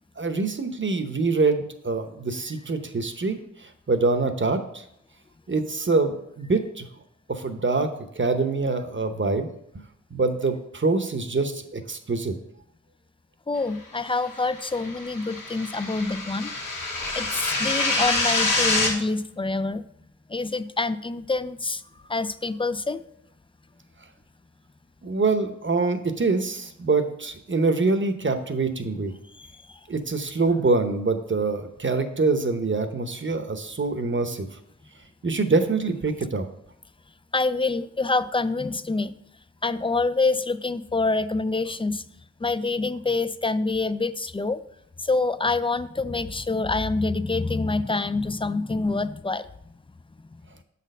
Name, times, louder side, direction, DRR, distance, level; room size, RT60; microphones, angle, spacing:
voice 1, 0.2-4.8 5.5-6.9 7.3-7.9 8.1-9.5 10.1-12.3 25.0-29.1 29.9-34.5 35.2-36.5, right 3 dB, 40° right, 8 dB, 0.8 m, -25 dB
voice 2, 13.5-16.5 17.1-19.8 20.3-21.8 22.1-23.0 29.4-29.8 37.3-39.1 39.6-42.0 42.4-44.6 45.0-49.5, left 3 dB, 20° left, 14 dB, 0.3 m, -26 dB
sound 1, 14.5-18.9, left 2 dB, 85° left, 1.7 m, -26 dB
7.1 x 4.2 x 5.4 m, 0.74 s
cardioid pair, 50°, 31 cm